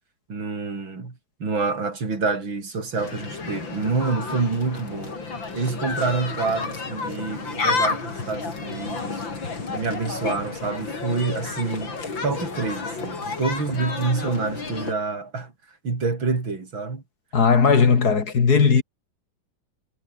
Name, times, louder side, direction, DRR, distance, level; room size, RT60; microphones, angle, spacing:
voice 1, 0.3-1.1 1.4-5.2 5.5-9.2 9.7-11.9 12.2-15.5 15.8-17.0, right 4 dB, 85° right, 5.0 m, -27 dB
sound 1, 3.0-14.9, left 4 dB, 80° left, 4.7 m, -31 dB
voice 2, 17.3-18.8, left 5 dB, 55° left, 2.6 m, -17 dB
omnidirectional pair, 2.1 m